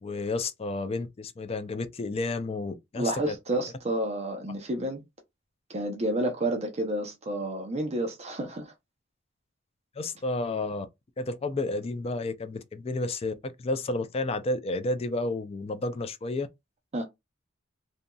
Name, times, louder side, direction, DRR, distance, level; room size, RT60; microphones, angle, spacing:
voice 1, 0.0-3.4 10.0-10.9 11.2-16.5, left 2 dB, 30° left, 0.4 m, -31 dB
voice 2, 2.9-5.0 5.7-8.7 16.9-17.0, right 1 dB, 35° right, 0.6 m, -30 dB
2.8 x 2.6 x 2.2 m
head